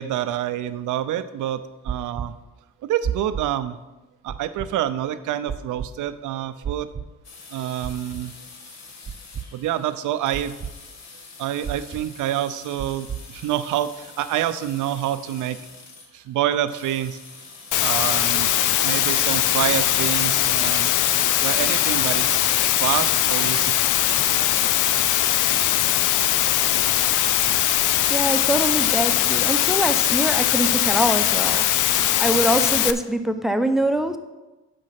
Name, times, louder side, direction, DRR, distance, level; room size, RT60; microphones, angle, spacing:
voice 1, 0.0-2.3 2.8-3.8 4.2-6.9 7.5-8.3 9.5-10.6 11.4-15.6 16.1-17.2 17.8-18.5 18.8-20.9 21.4-24.3, right 11 dB, 80° right, 12 dB, 0.6 m, -27 dB
sound 1, 1.9-2.3 3.0-3.5 4.3-4.7 5.5-5.9 6.6-7.1 7.8-8.2 9.1-9.5 10.3-10.7 11.6-12.0 12.8-13.2, right 8 dB, 35° right, 0.7 m, -30 dB
sound 2, 7.2-19.3, left 4 dB, 60° left, 1.5 m, -45 dB
Water, 17.7-32.9, left 12 dB, 80° left, 0.6 m, -20 dB
voice 2, 28.1-34.2, right 1 dB, ahead, 8 dB, 0.7 m, -24 dB
9.6 x 5.4 x 5.9 m, 1.1 s
cardioid pair, 90°, 30 cm